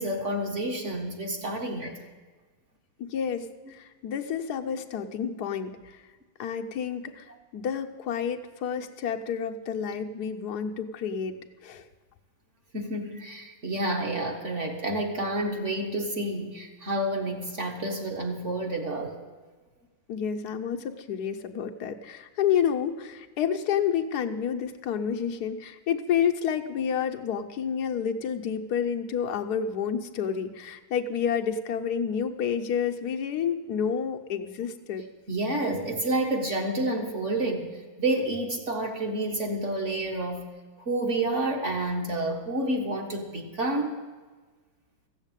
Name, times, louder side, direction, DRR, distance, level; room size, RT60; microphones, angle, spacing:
voice 1, 0.0-1.9 12.7-19.2 35.3-40.5 40.8-44.1, right 1 dB, 40° right, 3 dB, 1.8 m, -29 dB
voice 2, 3.0-6.0 6.4-11.3 11.6-11.9 20.1-35.0, left 7 dB, 60° left, 5 dB, 1.2 m, -29 dB
15.0 x 7.3 x 9.0 m, 1.4 s
omnidirectional pair, 2.2 m